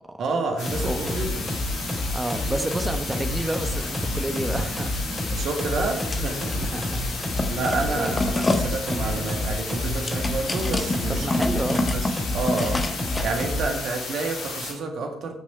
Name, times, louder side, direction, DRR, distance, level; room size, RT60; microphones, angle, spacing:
voice 1, 0.2-1.5 5.3-6.6 7.5-11.3 11.7-12.8 13.2-15.3, right 3 dB, 50° right, 3 dB, 2.1 m, -29 dB
sound 1, 0.6-14.7, left 3 dB, 55° left, 3.4 m, -34 dB
sound 2, 0.7-13.8, left 1 dB, 5° left, 3.6 m, -29 dB
voice 2, 0.8-1.2 2.1-5.2 5.9-6.0 6.6-7.6 7.9-8.2 11.1-12.0, right 1 dB, 15° right, 7 dB, 1.3 m, -30 dB
sound 3, 5.9-6.6 6.9-13.4, left 2 dB, 25° left, 1.4 m, -28 dB
15.0 x 7.1 x 4.5 m, 0.72 s
figure-of-eight pair, 50°, 0 cm